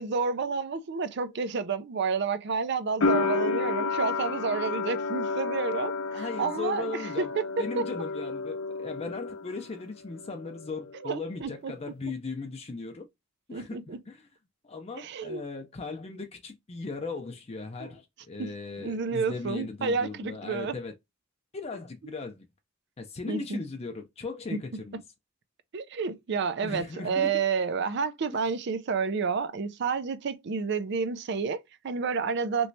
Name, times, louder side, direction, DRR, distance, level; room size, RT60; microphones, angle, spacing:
voice 1, 0.0-7.7 11.0-11.7 13.5-14.0 15.0-15.4 18.4-18.5 18.8-20.7 23.3-23.6 24.5-24.6 25.7-32.7, right 5 dB, 60° right, 0.4 m, -30 dB
sound 1, 3.0-9.8 10.1-11.0, left 4 dB, 85° left, 0.6 m, -31 dB
voice 2, 6.1-13.1 13.5-14.3 14.6-20.9 21.5-22.4 23.0-25.0 26.6-27.4, left 3 dB, 30° left, 0.5 m, -38 dB
3.2 x 3.0 x 2.6 m
head